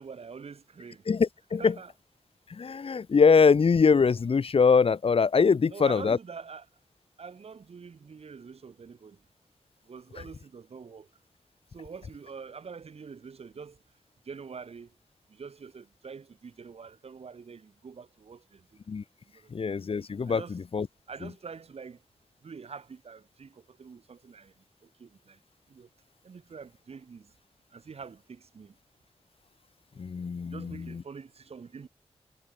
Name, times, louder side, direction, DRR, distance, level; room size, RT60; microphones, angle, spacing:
voice 1, 0.0-1.0 1.6-1.9 5.7-6.7 7.2-9.2 9.8-11.1 11.7-13.8 14.2-14.9 15.3-18.7 19.3-19.7 20.2-20.6 21.1-22.0 22.4-25.4 25.7-25.9 26.2-27.3 27.7-28.8 30.4-31.9, right 5 dB, 70° right, 2.7 m, -45 dB
voice 2, 1.1-1.7 2.5-6.2 18.9-19.0 19.5-20.9 30.0-31.0, left 5 dB, 60° left, 1.2 m, -23 dB
wide cardioid pair, 100°, 11 cm